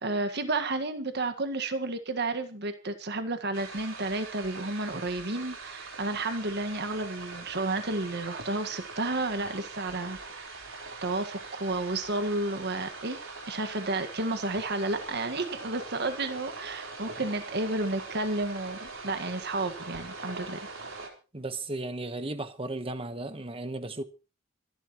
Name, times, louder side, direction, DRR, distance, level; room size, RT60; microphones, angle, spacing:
voice 1, 0.0-10.5 11.0-13.2 13.5-20.6, right 2 dB, 60° right, 1.7 m, -31 dB
sound 1, 3.5-21.1, right 3 dB, 75° right, 4.2 m, -42 dB
voice 2, 21.3-24.0, right 2 dB, 30° right, 1.2 m, -35 dB
25.5 x 11.0 x 3.1 m
head